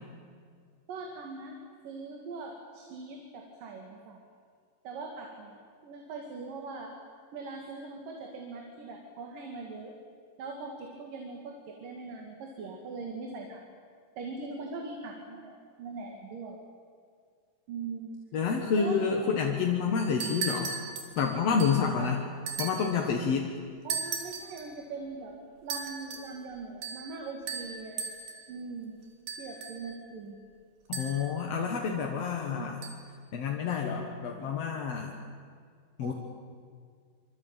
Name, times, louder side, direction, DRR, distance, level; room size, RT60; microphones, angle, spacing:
voice 1, 0.9-1.5 1.8-4.2 4.8-5.6 5.8-6.9 7.3-10.0 10.4-13.6 14.2-16.6 17.7-18.1 18.7-19.3 22.0-22.2 23.9-25.4 25.6-29.0 29.4-30.4 32.5-32.7 36.0-36.1, right 4 dB, 65° right, 2 dB, 3.7 m, -41 dB
voice 2, 18.3-20.7 21.2-22.2 22.6-23.6 30.9-32.8 33.3-35.2 36.0-36.1, left 6 dB, 55° left, 1 dB, 2.2 m, -29 dB
sound 1, 20.0-21.9 22.5-23.0 23.9-24.7 25.7-26.3 26.8-27.1 27.5-28.5 29.3-30.0 30.9-31.4 32.8-32.9, right 5 dB, 85° right, 4.6 m, -37 dB
26.0 x 25.0 x 9.0 m, 2.1 s
omnidirectional pair, 4.3 m